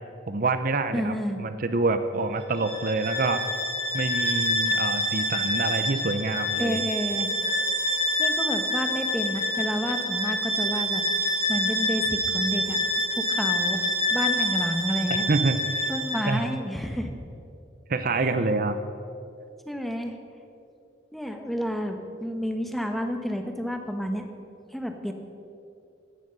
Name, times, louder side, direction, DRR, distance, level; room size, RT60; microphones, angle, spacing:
voice 1, 0.3-3.4 3.9-6.8 15.1-15.6 16.3-16.4 17.9-18.8, right 3 dB, 50° right, 10 dB, 0.7 m, -26 dB
voice 2, 0.9-1.4 6.6-7.3 8.2-11.0 11.5-12.8 13.1-13.8 14.1-15.2 15.9-17.1 18.1-18.3 19.7-20.2 21.1-24.3 24.7-25.1, equal, ahead, 4 dB, 1.2 m, -30 dB
Bowed string instrument, 2.5-16.4, left 1 dB, 35° right, 2.7 m, -27 dB
17.0 x 12.5 x 5.4 m, 2.7 s
head